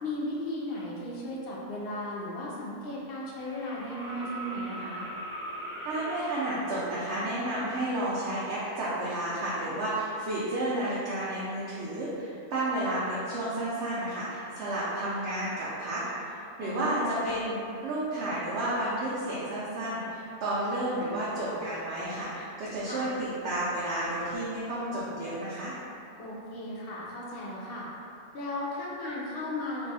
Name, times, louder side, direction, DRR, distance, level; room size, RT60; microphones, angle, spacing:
voice 1, 0.0-5.1 16.6-17.1 22.8-23.1 26.2-27.9 28.3-29.9, left 1 dB, 55° left, -5 dB, 0.7 m, -36 dB
sound 1, 3.4-6.6 8.4-8.5, right 1 dB, 15° left, 0.4 m, -40 dB
voice 2, 5.8-17.6 17.8-25.8, right 1 dB, 65° right, -9 dB, 0.8 m, -31 dB
2.6 x 2.3 x 4.0 m, 2.6 s
omnidirectional pair, 1.3 m